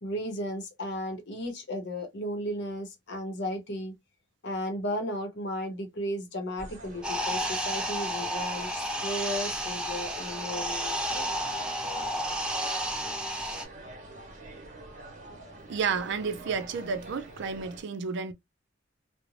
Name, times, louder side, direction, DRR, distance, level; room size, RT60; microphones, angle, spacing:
voice 1, 0.0-3.9 4.4-11.3 15.3-15.5, equal, 60° left, 0.8 m, -35 dB
sound 1, 6.6-17.8, right 2 dB, 40° right, 0.9 m, -46 dB
sound 2, 7.0-13.6, equal, 5° right, 0.5 m, -32 dB
voice 2, 15.7-18.3, right 5 dB, 65° right, 0.4 m, -31 dB
2.5 x 2.0 x 3.0 m
head